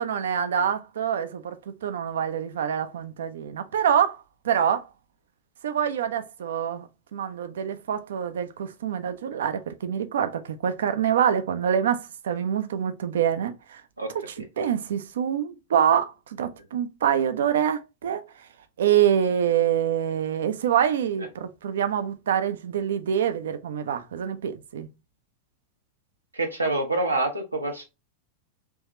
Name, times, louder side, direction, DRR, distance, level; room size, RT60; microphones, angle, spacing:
voice 1, 0.0-4.9 5.6-13.8 14.1-18.2 18.8-24.9, right 9 dB, 60° right, 0.5 m, -26 dB
voice 2, 26.3-27.8, right 2 dB, 85° right, 0.8 m, -26 dB
3.5 x 3.1 x 2.9 m
figure-of-eight pair, 90°, 0 cm